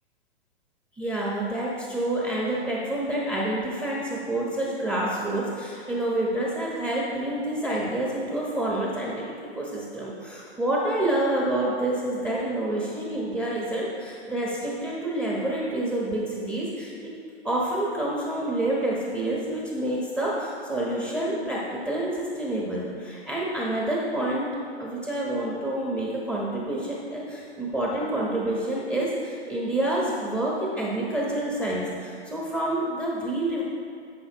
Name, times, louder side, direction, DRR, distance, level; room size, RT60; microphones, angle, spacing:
voice 1, 1.0-16.9 17.4-24.5 24.8-33.6, right 1 dB, 10° right, -5 dB, 1.1 m, -28 dB
13.5 x 5.5 x 3.0 m, 2.3 s
hypercardioid pair, 135°, 33 cm